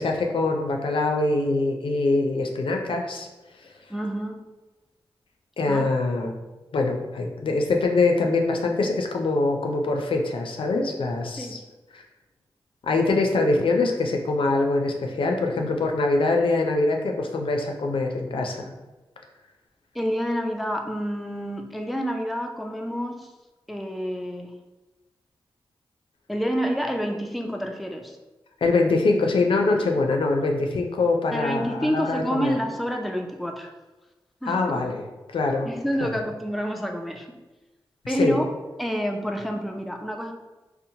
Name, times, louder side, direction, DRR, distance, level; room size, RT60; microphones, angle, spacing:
voice 1, 0.0-3.3 5.6-6.3 6.7-11.6 11.9-12.0 12.8-18.6 28.6-32.6 34.5-35.0 35.3-35.7 36.0-36.1 38.2-38.4, left 3 dB, 70° left, 2 dB, 0.4 m, -23 dB
voice 2, 3.9-4.4 5.7-5.8 11.4-11.6 19.9-23.3 23.7-24.5 26.3-28.2 29.8-29.9 31.3-33.7 34.4-34.8 35.6-37.3 38.1-38.4 38.8-40.3, equal, ahead, 3 dB, 0.3 m, -28 dB
2.8 x 2.1 x 2.7 m, 1.1 s
cardioid pair, 45°, 9 cm